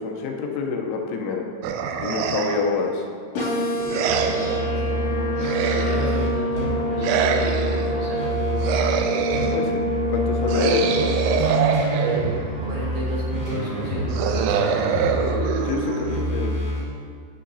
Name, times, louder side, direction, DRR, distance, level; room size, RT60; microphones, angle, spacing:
voice 1, 0.0-1.4 2.0-3.1 9.5-11.0 15.6-16.5, left 5 dB, 85° left, 1 dB, 3.3 m, -27 dB
sound 1, 1.6-2.8 3.9-4.7 5.4-6.3 7.0-7.9 8.6-9.7 10.5-12.5 14.1-16.5, right 7 dB, 90° right, 3.2 m, -25 dB
sound 2, 3.3-11.4, equal, 45° left, 2.6 m, -27 dB
voice 2, 3.7-8.7 12.6-15.4, right 1 dB, 60° right, -7 dB, 3.0 m, -34 dB
sound 3, 4.1-9.0 9.3-16.8, right 1 dB, 40° right, 1.5 m, -27 dB
9.9 x 9.2 x 2.7 m, 2.1 s
omnidirectional pair, 5.7 m